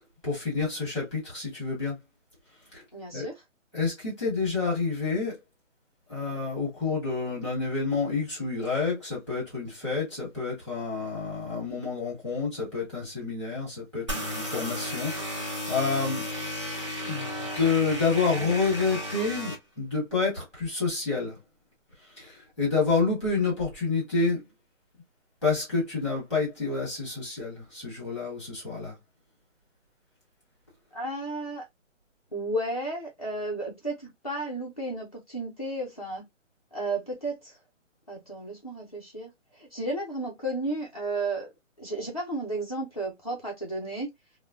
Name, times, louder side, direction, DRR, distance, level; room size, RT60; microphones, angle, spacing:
voice 1, 0.2-2.0 2.7-2.8 3.1-3.3 3.7-5.3 6.1-16.3 17.0-21.4 22.2-24.4 25.4-28.9, left 4 dB, ahead, 1.0 m, -29 dB
voice 2, 2.9-3.3 30.9-31.6 32.3-36.2 36.7-37.5 38.1-39.3 39.6-41.5 41.8-44.1, right 2 dB, 30° left, 0.4 m, -33 dB
sound 1, 14.1-19.6, left 1 dB, 25° right, 0.6 m, -34 dB
3.3 x 2.1 x 2.3 m
hypercardioid pair, 175°, 37 cm